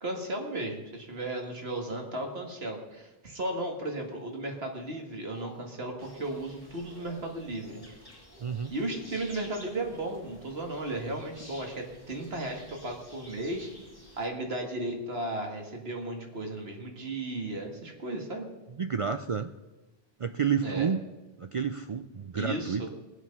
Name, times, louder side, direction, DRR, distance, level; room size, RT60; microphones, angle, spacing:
voice 1, 0.0-7.8 8.7-13.9 14.2-18.5 20.6-20.9 22.4-22.9, right 1 dB, 75° right, 2 dB, 2.4 m, -35 dB
Speech, 4.8-5.8 6.1-6.5 6.8-7.2 7.6-7.9 8.3-8.6 8.9-9.3 9.7-10.0 10.4-11.3 12.0-12.3, right 1 dB, 20° right, 1.8 m, -55 dB
sound 1, 6.0-14.3, left 1 dB, 20° left, 2.4 m, -52 dB
voice 2, 8.4-8.7 18.8-19.5 20.2-21.0 21.4-22.9, right 6 dB, 50° right, 9 dB, 0.4 m, -30 dB
20.0 x 7.9 x 5.5 m, 1.1 s
omnidirectional pair, 1.0 m